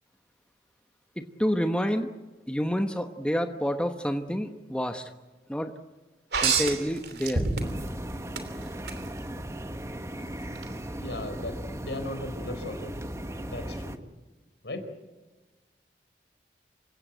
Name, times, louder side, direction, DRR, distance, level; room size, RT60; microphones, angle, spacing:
voice 1, 1.2-2.1 2.5-5.1 5.5-5.7 6.4-7.4, equal, 5° left, 6 dB, 1.0 m, -28 dB
sound 1, 6.3-7.9 8.4-9.0 10.6-10.7, right 4 dB, 65° right, 3.0 m, -27 dB
sound 2, 7.6-14.0, right 1 dB, 15° right, 1.1 m, -37 dB
voice 2, 11.0-12.9 13.5-14.0 14.6-14.9, left 1 dB, 75° left, 8 dB, 4.3 m, -37 dB
27.5 x 16.5 x 9.1 m, 1.2 s
head